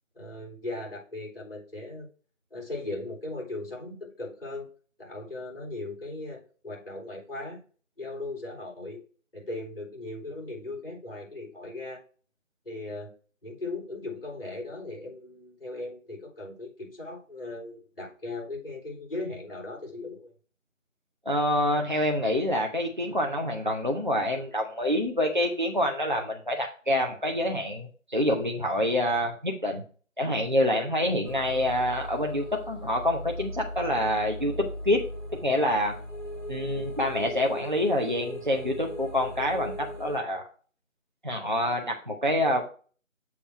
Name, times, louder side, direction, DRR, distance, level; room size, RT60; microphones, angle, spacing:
voice 1, 0.2-2.1 2.5-4.7 5.0-7.6 8.0-9.0 9.3-12.0 12.6-13.1 13.4-20.3, left 2 dB, 45° left, -3 dB, 3.9 m, -38 dB
voice 2, 21.3-29.8 30.2-35.0 35.4-35.9 36.5-40.4 41.2-42.7, left 1 dB, 35° right, 1 dB, 0.6 m, -27 dB
sound 1, 31.2-40.2, equal, 60° left, 2.8 m, -38 dB
7.1 x 3.2 x 6.0 m, 0.40 s
figure-of-eight pair, 170°, 40 cm